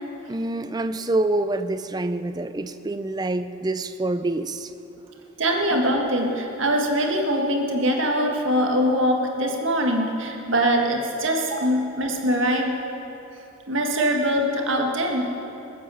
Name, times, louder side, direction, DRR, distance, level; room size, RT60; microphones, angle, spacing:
voice 1, 0.3-4.7 5.7-5.8 14.1-14.2, right 2 dB, 20° right, 11 dB, 0.4 m, -26 dB
voice 2, 5.4-12.7 13.7-15.3, equal, 65° right, 2 dB, 1.9 m, -23 dB
20.5 x 8.7 x 7.0 m, 2.8 s
head